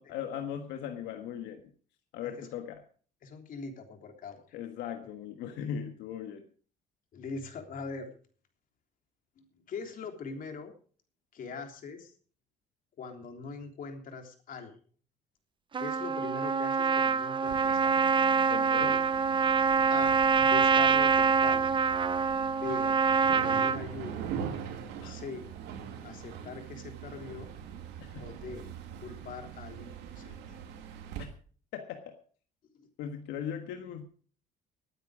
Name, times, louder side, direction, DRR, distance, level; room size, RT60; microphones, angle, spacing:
voice 1, 0.0-1.6 2.1-2.8 4.5-6.5 18.5-19.1 22.7-23.0 25.0-25.2 28.0-28.2 31.7-32.2 33.0-34.1, left 8 dB, 90° left, 5 dB, 1.5 m, -39 dB
voice 2, 3.2-4.4 7.1-8.1 9.4-10.7 11.3-12.1 13.0-14.8 15.8-18.0 19.9-21.6 22.6-22.9 23.4-24.3 25.0-25.5 26.0-27.5 28.2-28.7 29.0-30.6, left 5 dB, 55° left, 4 dB, 3.4 m, -42 dB
Trumpet, 15.7-23.8, right 6 dB, 30° right, 0.7 m, -25 dB
sound 1, 17.5-31.2, right 8 dB, 90° right, 2.7 m, -42 dB
19.5 x 9.2 x 5.0 m, 0.43 s
cardioid pair, 110°, 17 cm